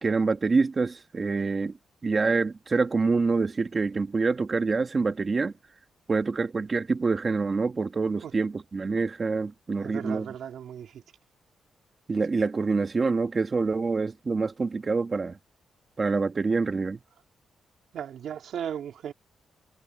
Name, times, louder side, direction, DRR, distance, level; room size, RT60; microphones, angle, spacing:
voice 1, 0.0-1.7 2.0-5.5 6.1-10.3 12.1-15.4 16.0-17.0, right 4 dB, 30° right, 1.6 m, -26 dB
voice 2, 9.8-11.0 17.9-19.1, right 9 dB, 70° right, 2.9 m, -36 dB
cardioid pair, 140°, 0 cm